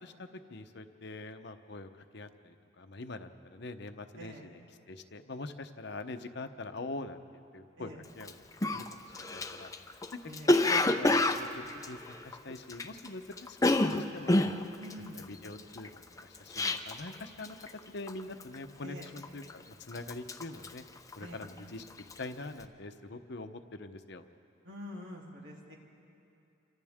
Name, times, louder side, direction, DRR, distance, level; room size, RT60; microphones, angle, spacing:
voice 1, 0.0-4.6 4.9-7.2 7.5-8.3 8.7-10.2 10.5-13.6 13.9-14.5 15.1-17.6 17.9-20.8 21.2-21.8 22.2-24.2, left 2 dB, 60° left, 8 dB, 0.9 m, -44 dB
voice 2, 4.1-4.5 7.8-8.0 9.2-9.3 10.2-10.6 14.8-15.3 18.8-19.1 21.2-21.4 24.6-25.8, equal, 80° right, -2 dB, 3.4 m, -46 dB
Cough, 8.2-8.3 8.6-13.1 13.3-17.1 17.4-17.8 18.1-18.5 19.0-19.6 19.9-21.6 21.9-22.2, left 2 dB, 15° left, 0.7 m, -28 dB
28.5 x 25.0 x 3.7 m, 2.7 s
head